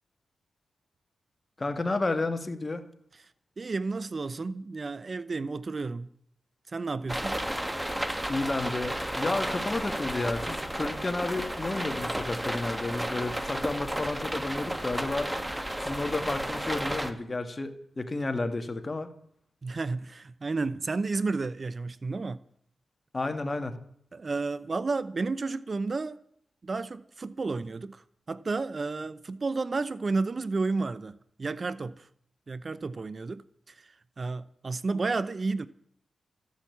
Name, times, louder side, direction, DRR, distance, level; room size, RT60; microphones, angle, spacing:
voice 1, 1.6-2.8 8.3-15.3 15.8-19.1 23.1-23.8, left 2 dB, 30° left, 2.0 m, -31 dB
voice 2, 3.6-6.1 6.7-7.4 19.6-22.4 24.1-26.2 26.6-32.1 32.5-35.7, right 3 dB, 45° right, 0.7 m, -32 dB
sound 1, 7.1-17.1, right 1 dB, 10° right, 1.7 m, -32 dB
14.5 x 10.5 x 8.5 m
cardioid pair, 70°, 0 cm